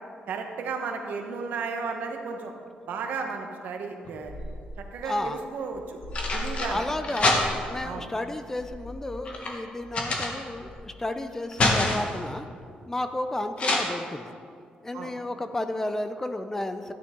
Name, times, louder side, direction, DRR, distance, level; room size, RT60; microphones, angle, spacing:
voice 1, 0.3-2.5 2.9-4.3 4.9-6.0 6.3-6.8 7.8-8.1 14.9-15.1, right 5 dB, 80° right, 3 dB, 1.2 m, -33 dB
sound 1, 4.0-4.9 5.7-7.8 8.6-10.8 11.2-12.2 13.6-13.8, left 2 dB, 40° left, 1.5 m, -27 dB
voice 2, 5.0-5.4 6.7-12.5 12.9-14.3 14.8-16.9, left 1 dB, 15° left, 9 dB, 0.5 m, -32 dB
13.0 x 9.6 x 3.7 m, 2.2 s
cardioid pair, 135°, 3 cm